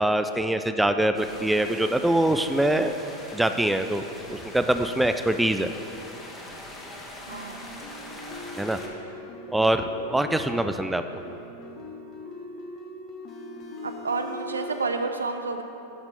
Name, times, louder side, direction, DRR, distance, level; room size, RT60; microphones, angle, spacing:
voice 1, 0.0-3.0 3.3-5.7 8.6-8.8 9.5-11.0, right 1 dB, 5° right, 8 dB, 0.3 m, -24 dB
sound 1, 1.1-8.9, left 1 dB, 15° left, 1.4 m, -42 dB
sound 2, 7.3-14.9, left 1 dB, 30° left, 0.9 m, -41 dB
voice 2, 7.3-7.8 13.8-15.6, right 4 dB, 75° right, 7 dB, 0.7 m, -30 dB
11.5 x 6.0 x 5.4 m, 3.0 s
figure-of-eight pair, 90°, 0 cm